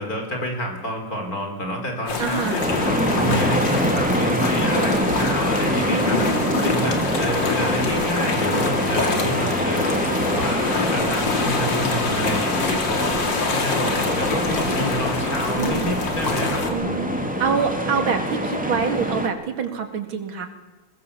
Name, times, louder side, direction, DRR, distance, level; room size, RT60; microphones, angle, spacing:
voice 1, 0.0-10.6 10.9-13.2 13.5-16.9, equal, 45° left, 3 dB, 4.7 m, -29 dB
sound 1, 2.1-16.7, left 4 dB, 70° left, 3.0 m, -25 dB
voice 2, 2.2-2.6 5.9-6.9 15.6-15.9 16.7-17.1 17.4-20.5, right 6 dB, 90° right, 7 dB, 2.9 m, -26 dB
sound 2, 2.6-19.3, equal, 5° right, 2.3 m, -25 dB
21.5 x 21.0 x 7.0 m, 1.2 s
omnidirectional pair, 2.1 m